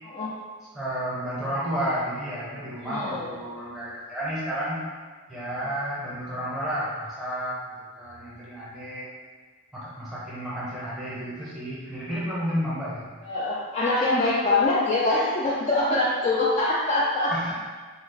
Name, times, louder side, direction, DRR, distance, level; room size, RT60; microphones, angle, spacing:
voice 1, 0.7-4.8 5.3-9.1 9.7-13.0 17.3-17.5, equal, ahead, -10 dB, 0.9 m, -31 dB
voice 2, 2.8-3.3 13.2-17.3, left 2 dB, 30° left, -7 dB, 0.3 m, -24 dB
3.4 x 2.0 x 3.9 m, 1.5 s
head